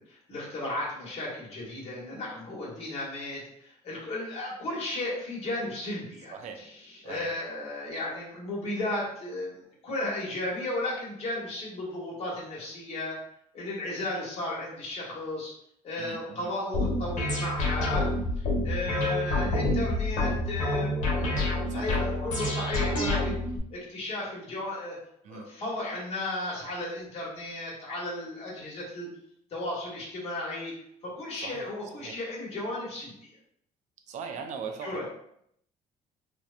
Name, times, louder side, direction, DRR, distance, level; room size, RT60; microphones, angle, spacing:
voice 1, 0.0-9.5 9.8-13.2 13.5-15.5 15.8-18.1 18.6-23.4 23.7-25.0 25.3-29.1 29.5-30.7 31.0-33.3 34.8-35.1, left 2 dB, 50° left, -5 dB, 1.0 m, -34 dB
voice 2, 16.0-16.5 21.7-22.0 25.2-25.5 31.3-31.6 32.0-32.1 34.1-35.0, right 5 dB, 60° right, 5 dB, 0.4 m, -39 dB
sound 1, 16.7-23.6, left 2 dB, 65° left, 1.0 m, -28 dB
2.9 x 2.1 x 2.4 m, 0.72 s
cardioid pair, 120°, 14 cm